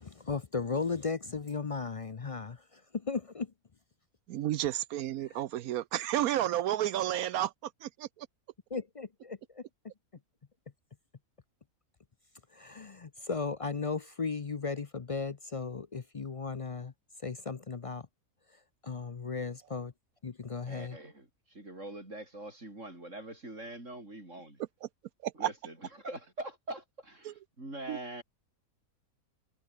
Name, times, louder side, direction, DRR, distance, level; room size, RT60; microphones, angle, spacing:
voice 1, 0.0-3.5 5.3-5.4 8.7-9.6 12.5-16.9 17.2-18.1 18.8-19.9 20.2-21.0, left 4 dB, 45° left, 0.4 m, -36 dB
voice 2, 4.3-8.3 24.8-24.9 25.2-25.5 27.2-27.3 27.9-28.0, right 12 dB, 75° right, 1.1 m, -32 dB
voice 3, 20.7-24.6 25.4-28.2, right 1 dB, 55° right, 8.1 m, -43 dB
omnidirectional pair, 1.5 m